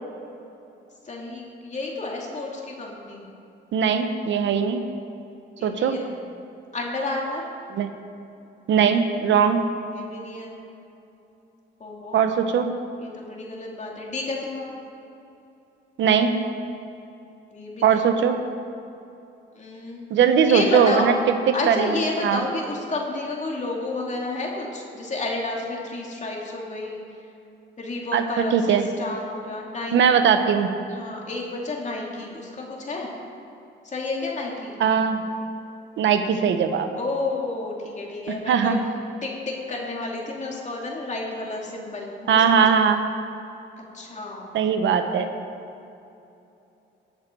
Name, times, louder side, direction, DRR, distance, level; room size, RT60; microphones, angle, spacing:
voice 1, 1.0-3.2 5.6-6.2 6.7-7.4 9.9-10.5 11.8-12.3 13.0-14.8 17.5-18.1 19.5-20.1 20.5-21.1 21.5-27.0 27.8-30.0 30.9-33.1 33.8-34.7 37.0-38.8 39.2-42.8 43.8-44.5, left 2 dB, 35° left, -1 dB, 2.6 m, -31 dB
voice 2, 3.7-4.8 5.6-6.0 7.7-7.9 8.7-9.6 12.1-12.7 16.0-16.4 17.8-18.4 20.1-21.1 21.5-21.9 22.2-22.4 28.1-28.2 28.5-28.9 29.9-30.7 34.8-35.2 36.0-36.9 38.5-38.8 42.3-43.0 44.5-45.3, right 7 dB, 70° right, 7 dB, 0.9 m, -20 dB
19.0 x 6.9 x 4.6 m, 2.8 s
cardioid pair, 90°, 20 cm